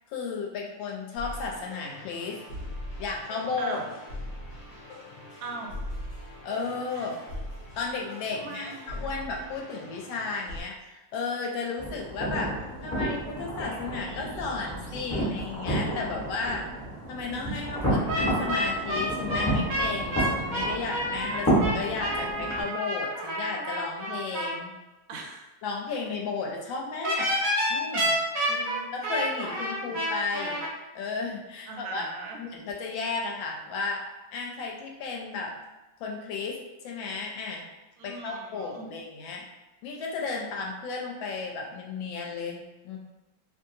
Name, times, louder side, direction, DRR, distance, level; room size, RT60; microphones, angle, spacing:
voice 1, 0.1-2.4 3.0-3.9 6.4-7.2 7.8-16.6 17.1-24.7 25.6-27.3 27.7-28.1 29.1-30.6 30.9-32.0 32.4-34.0 34.3-35.5 36.0-36.6 36.8-37.6 38.0-39.4 39.8-43.0, left 4 dB, 75° left, 0 dB, 1.3 m, -34 dB
sound 1, 1.2-10.6, left 1 dB, 55° left, 0.9 m, -41 dB
voice 2, 5.4-5.7 6.9-7.2 8.3-9.1 25.1-25.5 28.5-29.0 29.8-30.0 31.7-32.4 38.0-38.9, right 3 dB, 80° right, 1 dB, 1.3 m, -40 dB
sound 2, 11.8-22.6, right 1 dB, 10° left, 0.8 m, -30 dB
sound 3, 18.1-24.6 27.0-30.7, equal, 60° right, 1.0 m, -29 dB
3.0 x 2.7 x 2.6 m, 1.1 s
omnidirectional pair, 2.2 m